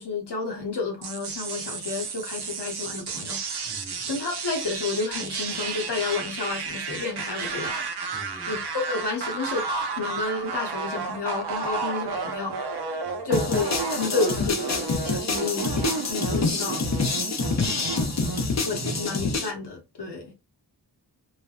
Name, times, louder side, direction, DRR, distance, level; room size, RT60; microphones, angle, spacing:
voice 1, 0.0-3.7 4.0-7.8 8.5-9.7 9.9-12.6 13.2-16.9 18.6-20.3, left 4 dB, 75° left, 0.9 m, -31 dB
sound 1, 1.0-19.4, right 4 dB, 70° right, 0.6 m, -32 dB
voice 2, 3.7-4.1 8.1-8.6 13.1-13.3 17.8-18.4 18.8-19.0, right 1 dB, 10° right, 0.4 m, -43 dB
sound 2, 13.3-19.5, left 4 dB, 45° left, 0.5 m, -27 dB
3.2 x 2.1 x 2.3 m
wide cardioid pair, 60°, 41 cm